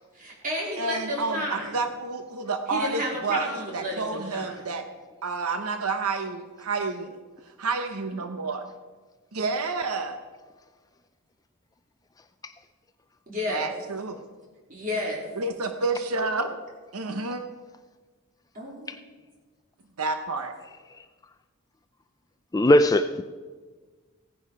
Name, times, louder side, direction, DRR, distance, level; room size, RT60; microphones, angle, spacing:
voice 1, 0.1-1.7 2.7-4.7 13.3-13.7 14.7-15.2 18.5-18.9, equal, 40° right, -2 dB, 3.5 m, -31 dB
voice 2, 0.8-4.8 5.2-7.1 7.6-8.6 9.3-10.2 13.5-14.2 15.4-16.6 16.9-17.4 20.0-20.5, right 3 dB, 85° right, 7 dB, 0.9 m, -29 dB
voice 3, 22.5-23.2, left 1 dB, 15° left, 9 dB, 0.3 m, -18 dB
16.0 x 10.0 x 4.9 m, 1.4 s
head